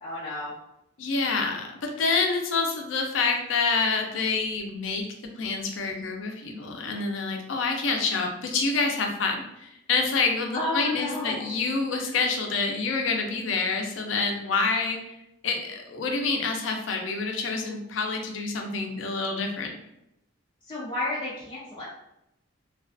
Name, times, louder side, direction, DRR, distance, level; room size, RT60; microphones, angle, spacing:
voice 1, 0.0-0.5 10.5-11.5 20.7-21.9, left 2 dB, 25° left, -8 dB, 0.5 m, -31 dB
voice 2, 1.0-5.1 5.4-15.1 15.4-19.7, left 4 dB, 85° left, 3 dB, 0.5 m, -27 dB
2.3 x 2.3 x 2.5 m, 0.84 s
head